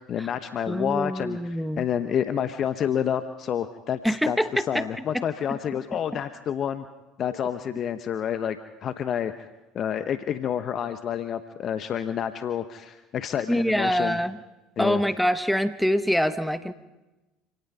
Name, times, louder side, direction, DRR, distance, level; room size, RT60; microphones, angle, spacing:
voice 1, 0.1-6.9 7.2-9.5 9.7-14.2 14.8-15.0, left 9 dB, 45° left, 10 dB, 0.9 m, -29 dB
voice 2, 0.7-1.9 4.0-4.8 5.1-5.2 5.5-5.6 13.5-14.4 14.8-16.7, equal, ahead, 11 dB, 1.1 m, -25 dB
27.5 x 18.5 x 5.5 m, 1.1 s
hypercardioid pair, 70°, 0 cm